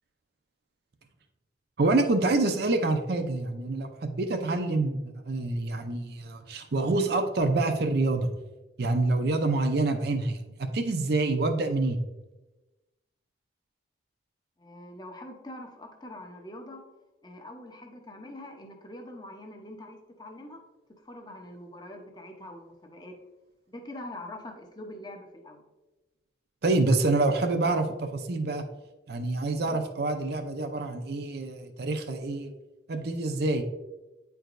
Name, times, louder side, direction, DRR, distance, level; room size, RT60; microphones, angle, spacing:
voice 1, 1.8-8.3 8.8-12.0 26.6-28.6 29.1-32.5 32.9-33.6, right 2 dB, 55° right, 6 dB, 0.5 m, -27 dB
voice 2, 14.6-16.8 17.2-20.6 21.0-23.2 23.7-25.6, left 1 dB, 20° left, 3 dB, 0.7 m, -44 dB
8.9 x 4.6 x 2.5 m, 1.1 s
head